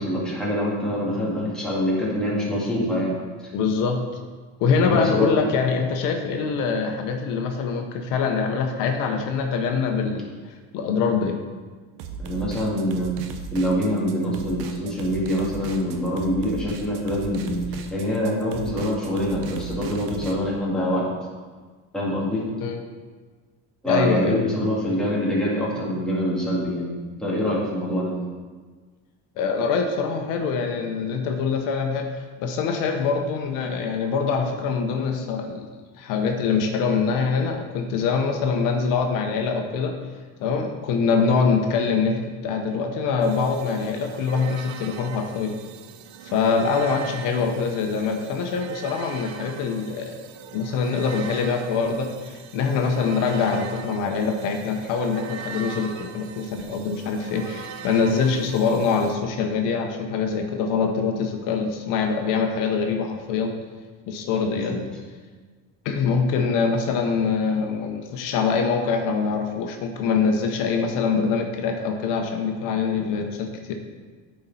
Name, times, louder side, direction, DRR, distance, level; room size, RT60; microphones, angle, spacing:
voice 1, 0.0-3.2 4.8-5.4 12.2-13.1 13.5-17.6 17.9-21.1 21.9-22.5 23.8-28.1 64.4-64.8, equal, ahead, -7 dB, 2.0 m, -25 dB
voice 2, 3.5-4.0 4.6-10.3 10.7-11.4 22.6-22.8 23.8-24.4 29.4-32.1 32.4-35.7 36.0-40.0 40.4-45.5 46.3-50.2 50.5-63.5 64.1-64.8 65.8-73.7, left 5 dB, 80° left, 4 dB, 0.9 m, -24 dB
sound 1, 12.0-20.4, right 6 dB, 80° right, 0.8 m, -37 dB
sound 2, 43.2-59.1, right 7 dB, 60° right, 0.6 m, -40 dB
9.6 x 4.3 x 4.1 m, 1.4 s
cardioid pair, 130°, 32 cm